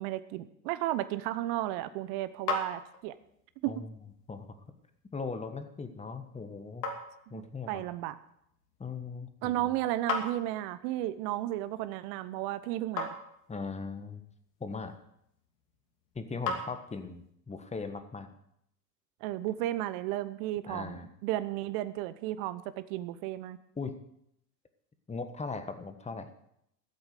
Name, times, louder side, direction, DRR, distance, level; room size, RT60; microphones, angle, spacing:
voice 1, 0.0-3.1 3.6-3.8 7.3-8.2 9.4-13.1 19.2-23.6, right 14 dB, 50° right, 13 dB, 1.0 m, -33 dB
sound 1, 1.5-17.3, left 4 dB, 75° left, 2.8 m, -42 dB
voice 2, 3.7-4.0 4.3-4.5 5.1-6.9 7.3-7.8 8.8-9.7 13.5-14.2 14.6-14.9 16.1-18.3 20.6-21.1 23.8-24.0 25.1-26.3, left 4 dB, 15° left, 8 dB, 1.5 m, -39 dB
15.0 x 8.0 x 6.7 m, 0.76 s
hypercardioid pair, 90°, 49 cm